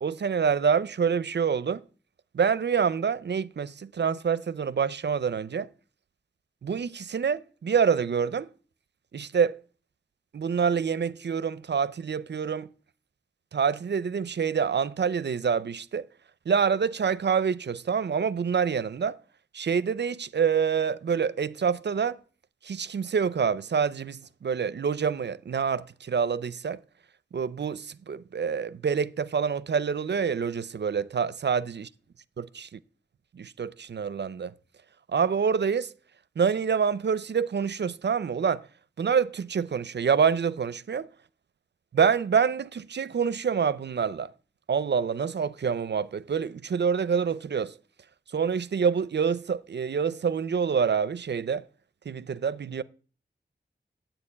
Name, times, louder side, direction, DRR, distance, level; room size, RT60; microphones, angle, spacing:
voice 1, 0.0-1.8 2.3-5.7 6.6-8.5 9.1-9.6 10.3-12.7 13.5-16.1 16.5-19.2 19.5-22.2 22.6-26.8 27.3-31.9 32.4-32.7 33.3-34.5 35.1-35.9 36.4-38.7 39.0-41.1 41.9-44.3 44.7-47.8 48.3-51.7 52.1-52.8, right 6 dB, 65° right, 0.5 m, -26 dB
9.0 x 6.8 x 8.5 m
wide cardioid pair, 70°, 19 cm